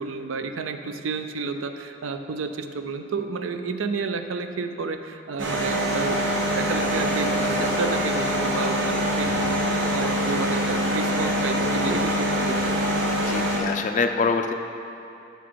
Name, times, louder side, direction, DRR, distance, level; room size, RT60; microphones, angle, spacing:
voice 1, 0.0-12.8, right 4 dB, 85° right, 8 dB, 0.5 m, -31 dB
sound 1, 5.4-13.6, equal, 70° right, 1.1 m, -24 dB
voice 2, 13.1-14.5, left 4 dB, 40° left, 6 dB, 0.4 m, -25 dB
6.9 x 6.1 x 4.6 m, 2.7 s
head